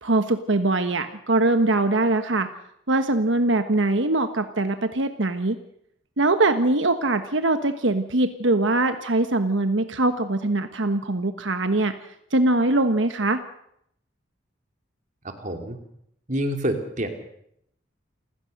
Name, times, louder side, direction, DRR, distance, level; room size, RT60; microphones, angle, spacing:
voice 1, 0.0-2.5 2.9-5.6 6.2-11.9 12.3-13.4, right 2 dB, 80° right, 8 dB, 1.3 m, -22 dB
voice 2, 15.4-15.8 16.3-17.1, equal, 40° right, 5 dB, 2.9 m, -27 dB
28.5 x 16.0 x 6.6 m, 0.73 s
head